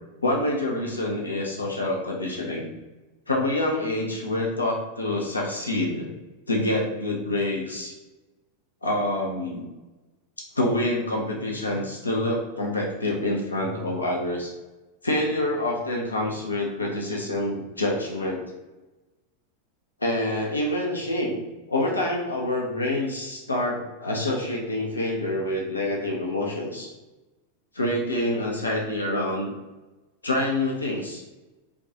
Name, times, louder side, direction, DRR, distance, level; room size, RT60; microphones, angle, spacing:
voice 1, 0.2-2.7 3.3-6.1 6.5-7.9 8.8-9.7 10.6-14.5 15.0-18.4 20.0-21.4 21.7-26.9 27.7-29.5 30.2-31.2, left 1 dB, 80° left, -1 dB, 0.6 m, -26 dB
4.6 x 2.3 x 2.8 m, 1.1 s
figure-of-eight pair, 90°, 0 cm